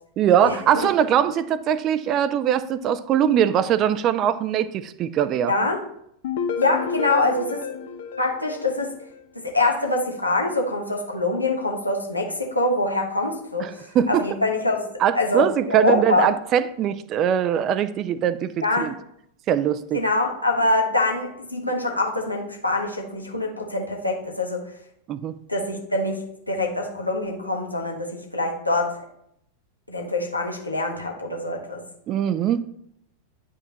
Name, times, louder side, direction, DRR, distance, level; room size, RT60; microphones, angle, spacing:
voice 1, 0.2-5.5 13.9-14.3 15.0-18.9 19.5-20.0 25.1-25.3 32.1-32.6, right 9 dB, 35° right, 15 dB, 0.4 m, -21 dB
voice 2, 5.5-5.8 6.6-7.7 8.2-8.9 9.5-13.7 14.1-14.9 15.1-16.3 18.6-18.9 19.9-24.6 25.5-28.9 29.9-31.8, left 2 dB, 85° left, 0 dB, 1.2 m, -24 dB
sound 1, 6.2-9.2, left 6 dB, 55° left, 0.7 m, -30 dB
9.5 x 4.9 x 3.0 m, 0.73 s
figure-of-eight pair, 90°, 0 cm